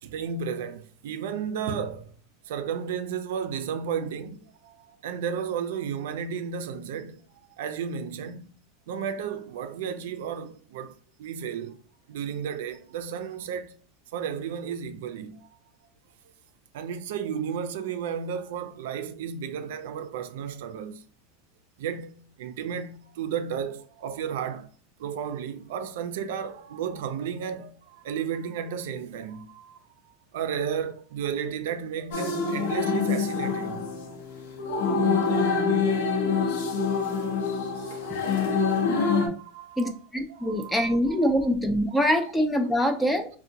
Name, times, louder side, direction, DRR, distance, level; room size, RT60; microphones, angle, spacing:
voice 1, 0.0-2.1 2.4-7.3 7.6-8.5 8.9-11.8 12.1-13.8 14.1-15.5 16.7-21.0 21.8-24.7 25.0-29.8 30.3-33.9 34.9-35.0 36.6-37.0 37.5-41.3 41.9-42.0, right 7 dB, 70° right, 0.4 m, -33 dB
sound 1, 32.1-39.3, left 5 dB, 75° left, 0.7 m, -26 dB
voice 2, 39.8-43.3, equal, 5° left, 0.3 m, -24 dB
3.5 x 2.1 x 2.7 m
supercardioid pair, 170°, 0 cm